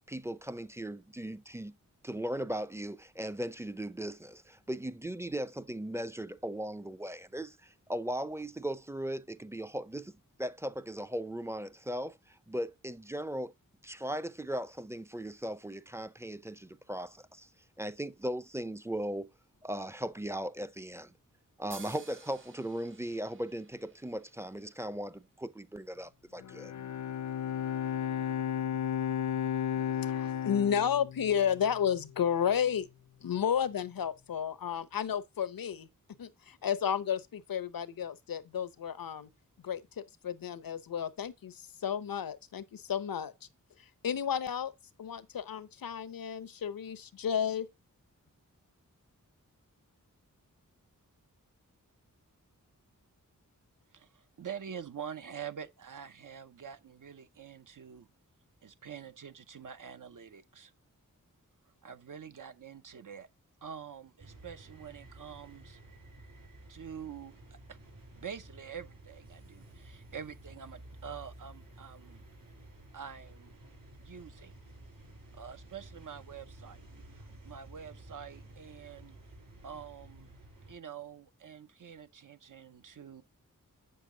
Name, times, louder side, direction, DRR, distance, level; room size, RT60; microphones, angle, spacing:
voice 1, 0.1-1.8 2.0-13.5 13.8-17.5 17.8-19.3 19.6-21.1 21.6-26.7, right 1 dB, 10° right, 0.5 m, -38 dB
sound 1, 21.7-25.3, right 4 dB, 35° right, 0.7 m, -54 dB
Bowed string instrument, 26.4-31.8, left 9 dB, 60° left, 0.5 m, -34 dB
voice 2, 30.1-32.9 33.2-35.9 36.2-39.3 39.6-43.3 44.0-44.7 45.0-47.7, left 8 dB, 85° left, 0.8 m, -32 dB
voice 3, 53.9-58.1 58.6-60.7 61.8-63.3 63.6-65.8 66.7-67.8 68.2-72.2 72.9-73.5 74.0-74.5 75.3-76.8 77.1-79.2 79.6-80.3 80.7-83.2, right 7 dB, 65° right, 0.7 m, -46 dB
sound 2, 64.2-80.7, right 1 dB, 90° right, 4.5 m, -53 dB
8.2 x 6.7 x 3.7 m
wide cardioid pair, 110°, 34 cm